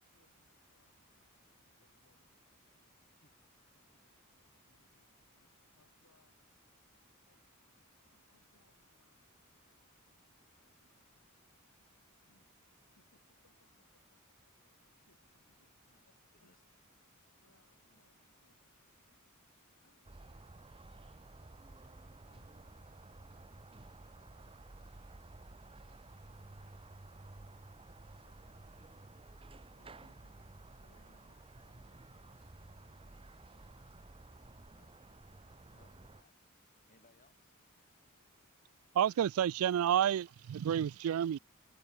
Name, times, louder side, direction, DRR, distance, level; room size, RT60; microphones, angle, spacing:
voice 1, 0.0-2.8 4.4-6.4 7.3-7.4 8.1-9.9 10.4-11.6 13.0-16.1 16.4-16.6 17.3-19.3 19.6-21.1 21.8-26.0 26.3-27.4 28.2-28.9 29.4-34.3, left 2 dB, 80° left, 6.2 m, -76 dB
sound 1, 20.0-36.2, right 2 dB, 25° right, 0.8 m, -54 dB
voice 2, 35.7-37.6, left 2 dB, 40° left, 6.3 m, -70 dB
voice 3, 38.9-41.4, right 9 dB, 80° right, 0.3 m, -30 dB
head